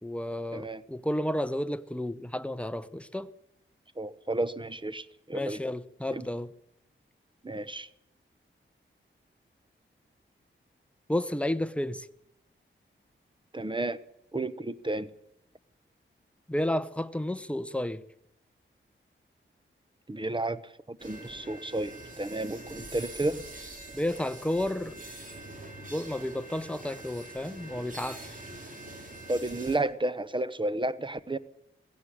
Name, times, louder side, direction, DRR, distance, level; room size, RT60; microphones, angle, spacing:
voice 1, 0.0-3.3 5.3-6.5 11.1-12.1 16.5-18.0 23.9-25.0 25.9-28.4, left 1 dB, 5° left, 0.8 m, -32 dB
voice 2, 4.0-5.6 6.1-6.2 7.4-7.9 13.5-14.0 14.3-15.1 20.1-20.6 20.9-23.4 29.3-31.4, right 2 dB, 25° right, 1.0 m, -32 dB
sound 1, 21.0-29.8, right 2 dB, 40° right, 5.2 m, -44 dB
17.0 x 16.0 x 10.0 m
wide cardioid pair, 100°, 21 cm